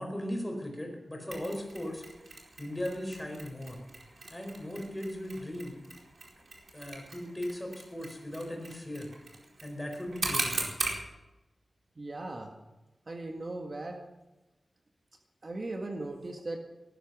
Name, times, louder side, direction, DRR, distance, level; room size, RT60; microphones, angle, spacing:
voice 1, 0.0-2.0 2.6-3.8 4.3-5.8 6.7-9.1 9.6-10.7, left 1 dB, 10° left, 2 dB, 4.8 m, -37 dB
Mechanisms, 1.3-11.0, right 3 dB, 65° right, 4.6 m, -40 dB
voice 2, 12.0-12.5 13.1-14.0 15.4-16.6, right 2 dB, 40° right, 2 dB, 1.7 m, -38 dB
18.5 x 13.0 x 6.1 m, 1.0 s
wide cardioid pair, 115°, 0 cm